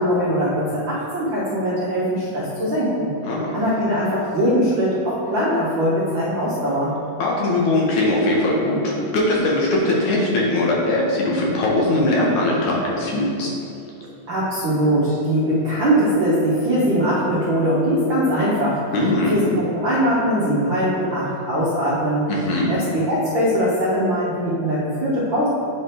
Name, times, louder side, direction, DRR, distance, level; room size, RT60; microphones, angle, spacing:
voice 1, 0.0-3.1 3.5-6.9 14.3-18.8 19.3-22.3 22.7-25.5, equal, 70° right, -8 dB, 1.1 m, -21 dB
voice 2, 3.2-3.6 7.2-13.5 18.9-19.4 22.3-22.7, left 1 dB, 75° left, -3 dB, 2.4 m, -20 dB
7.9 x 3.4 x 4.4 m, 2.6 s
omnidirectional pair, 3.5 m